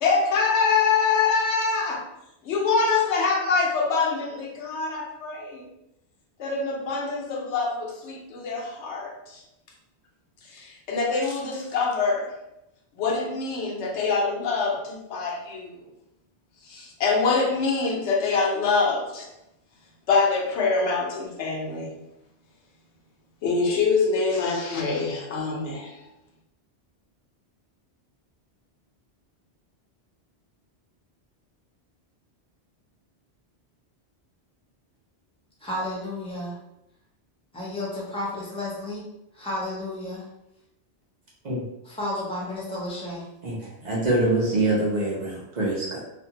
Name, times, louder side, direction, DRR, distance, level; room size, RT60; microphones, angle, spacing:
voice 1, 0.0-2.0 2.4-5.6 6.4-9.4 10.5-12.3 13.0-15.8 16.7-19.3 20.1-21.9 23.4-25.9, left 4 dB, 80° left, 0.9 m, -25 dB
voice 2, 35.6-36.5 37.5-39.0 39.4-40.2 41.9-43.2, left 1 dB, 5° left, 0.5 m, -32 dB
voice 3, 43.8-46.0, right 2 dB, 45° right, 0.7 m, -24 dB
2.5 x 2.2 x 2.8 m
omnidirectional pair, 1.1 m